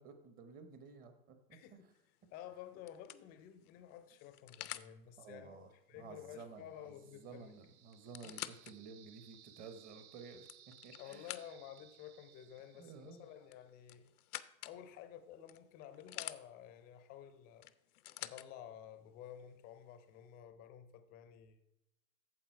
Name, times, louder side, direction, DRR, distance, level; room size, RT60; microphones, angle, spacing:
voice 1, 0.0-1.4 5.2-10.5 10.8-11.3 12.7-13.3, right 5 dB, 20° right, 8 dB, 0.9 m, -53 dB
voice 2, 1.5-1.9 2.3-7.5 8.4-8.5 11.0-14.1 14.6-17.7 18.2-21.6, left 10 dB, 20° left, 10 dB, 0.5 m, -52 dB
sound 1, 2.0-2.3 2.9-4.9 7.0-7.1 7.3-7.4 7.9-8.7 9.3-9.4 10.2-11.8 13.5-14.8 15.5-16.4 17.6-18.5 19.4-19.5, left 14 dB, 85° left, 0.6 m, -48 dB
sound 2, 6.7-13.6, right 10 dB, 50° right, 0.9 m, -63 dB
8.8 x 7.0 x 4.5 m, 0.84 s
hypercardioid pair, 140°, 44 cm